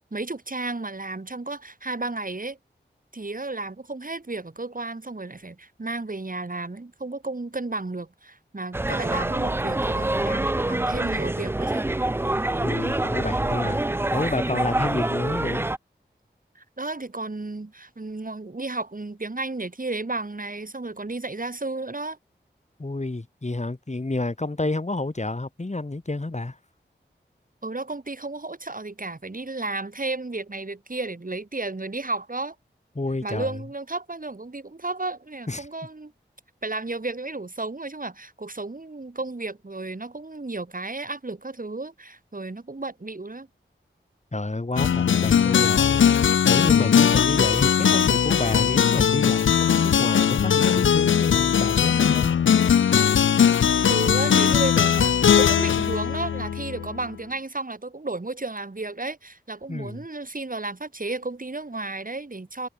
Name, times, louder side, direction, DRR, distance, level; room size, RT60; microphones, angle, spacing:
voice 1, 0.1-2.6 3.1-11.8 16.6-22.2 27.6-32.6 33.2-36.1 36.6-43.5 53.9-62.7, right 2 dB, 45° right, 3.7 m, -33 dB
sound 1, 8.7-15.8, right 2 dB, 10° right, 0.4 m, -26 dB
voice 2, 12.6-15.6 22.8-26.6 32.9-33.5 35.5-35.7 44.3-46.0 46.5-52.3 59.7-60.1, left 2 dB, 35° left, 2.6 m, -29 dB
sound 2, 44.8-57.0, left 8 dB, 85° left, 0.5 m, -19 dB
cardioid pair, 40°, 19 cm